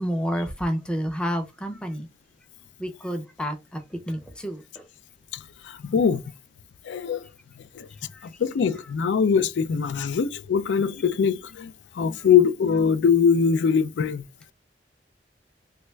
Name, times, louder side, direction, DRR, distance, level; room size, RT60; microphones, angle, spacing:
voice 1, 0.0-2.1 2.8-3.8 4.1-4.8 8.1-8.3 10.0-10.1, equal, 5° left, 0.4 m, -29 dB
voice 2, 5.3-6.2 6.8-7.3 7.7-7.9 8.2-14.2, left 6 dB, 85° left, 0.4 m, -22 dB
3.3 x 2.2 x 3.1 m
head